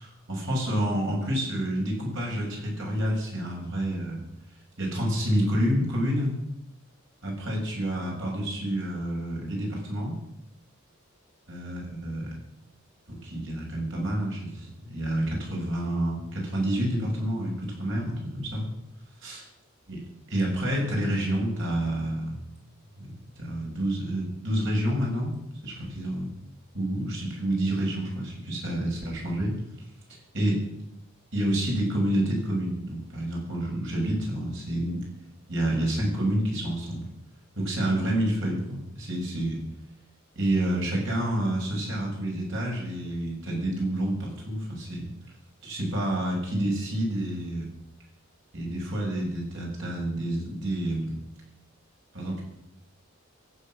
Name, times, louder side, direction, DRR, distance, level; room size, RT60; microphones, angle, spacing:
voice 1, 0.0-4.2 4.8-6.3 7.2-10.2 11.5-12.3 13.1-18.7 19.2-19.4 19.9-20.0 20.3-22.4 23.0-25.3 25.6-26.3 26.7-29.5 30.3-30.6 31.3-35.0 35.5-37.1 37.5-39.6 40.3-45.1 45.6-47.7 48.5-51.1 52.1-52.4, right 1 dB, 60° right, -2 dB, 6.8 m, -28 dB
23.0 x 8.5 x 6.5 m, 0.82 s
head